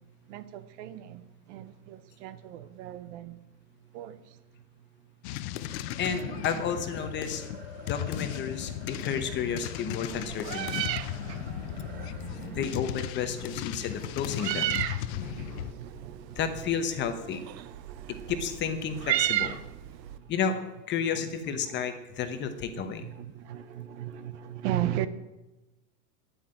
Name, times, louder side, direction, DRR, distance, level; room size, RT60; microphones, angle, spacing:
voice 1, 0.3-3.4 3.9-4.4 7.8-7.9 11.0-12.6 15.1-16.4 17.4-18.3 20.0-20.3 21.1-21.3 22.3-22.4 23.0-25.1, right 12 dB, 45° right, 0.9 m, -38 dB
sound 1, 5.2-15.7, left 13 dB, 45° left, 0.6 m, -36 dB
sound 2, 5.6-16.1, right 2 dB, 20° right, 3.3 m, -47 dB
voice 2, 6.0-7.4 7.9-10.9 12.5-14.8 16.4-17.4 18.3-19.6 20.3-20.6 20.9-23.1, left 7 dB, 20° left, 1.0 m, -31 dB
Meow, 10.1-20.2, right 14 dB, 85° right, 0.9 m, -35 dB
9.8 x 9.4 x 8.8 m
supercardioid pair, 160°, 49 cm